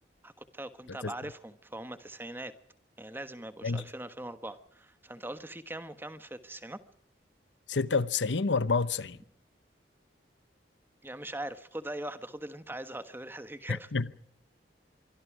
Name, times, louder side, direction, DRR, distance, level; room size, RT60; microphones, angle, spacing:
voice 1, 0.2-2.5 3.0-6.8 11.0-13.9, right 1 dB, 10° right, 1.3 m, -41 dB
voice 2, 7.7-9.2 13.7-14.1, left 4 dB, 85° left, 0.9 m, -29 dB
24.5 x 24.0 x 4.9 m
head